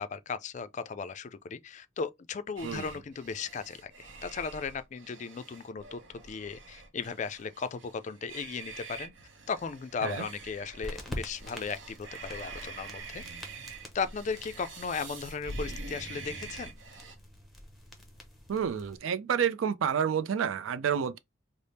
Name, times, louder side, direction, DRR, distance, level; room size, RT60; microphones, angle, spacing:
voice 1, 0.0-9.1 9.5-13.2 13.9-16.7, left 5 dB, 40° left, 0.3 m, -36 dB
sound 1, 2.6-17.1, right 3 dB, 65° right, 0.7 m, -45 dB
sound 2, 10.8-19.0, left 1 dB, ahead, 0.7 m, -46 dB
voice 2, 18.5-21.2, right 7 dB, 85° right, 0.4 m, -29 dB
3.4 x 2.0 x 4.1 m
head